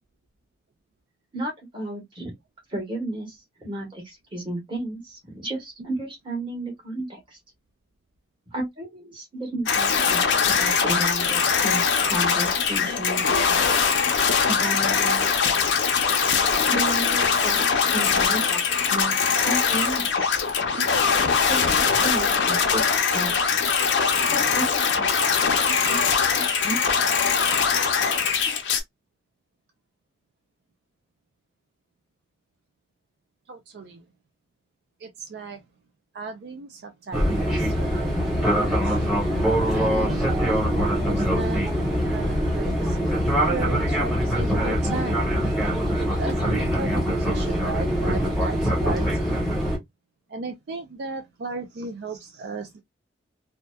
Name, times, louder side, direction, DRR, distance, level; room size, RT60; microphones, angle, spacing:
voice 1, 1.3-2.3 2.7-7.4 8.5-10.2 10.5-13.8 14.5-15.3 16.6-20.3 21.5-22.8 23.1-23.3 24.3-25.1 25.9-26.0 26.3-26.8, right 1 dB, 30° right, 1.2 m, -33 dB
sound 1, 9.7-28.8, left 6 dB, 85° left, 0.6 m, -22 dB
voice 2, 33.5-34.0 35.0-35.6 36.1-39.0 39.7-43.0 43.5-45.3 46.2-49.4 50.3-52.8, right 3 dB, 65° right, 0.4 m, -35 dB
Fixed-wing aircraft airplane, 37.1-49.8, equal, ahead, 0.8 m, -23 dB
2.7 x 2.1 x 2.2 m
head